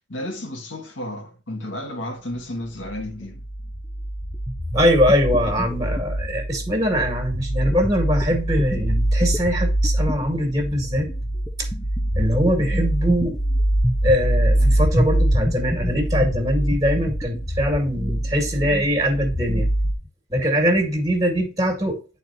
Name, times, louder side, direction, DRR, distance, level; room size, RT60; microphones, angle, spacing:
voice 1, 0.1-3.4, left 1 dB, 90° left, 1.8 m, -32 dB
sound 1, 2.8-19.9, right 1 dB, 10° left, 0.8 m, -24 dB
voice 2, 4.7-11.1 11.6-11.7 12.1-13.4 14.0-19.7 20.3-22.0, equal, 20° right, 1.9 m, -22 dB
11.0 x 4.2 x 2.7 m
head